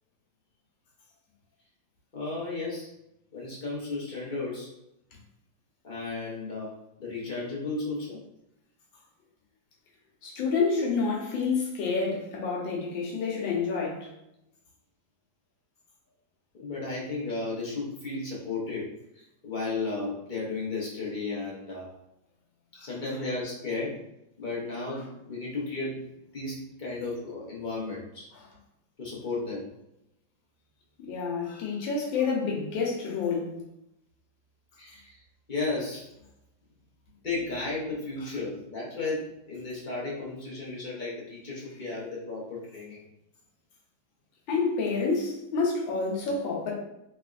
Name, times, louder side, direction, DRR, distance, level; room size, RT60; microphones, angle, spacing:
voice 1, 2.1-2.9 3.3-4.7 5.8-8.2 16.5-18.9 19.1-21.9 22.8-24.0 24.4-26.0 26.3-28.3 29.0-29.7 34.8-35.2 35.5-36.1 37.2-43.0, left 3 dB, 50° left, -5 dB, 0.5 m, -34 dB
voice 2, 10.2-14.1 22.7-22.9 28.3-28.5 31.0-33.5 38.2-38.3 44.5-46.7, left 4 dB, 80° left, -2 dB, 1.6 m, -28 dB
3.4 x 3.2 x 2.4 m, 0.83 s
omnidirectional pair, 2.1 m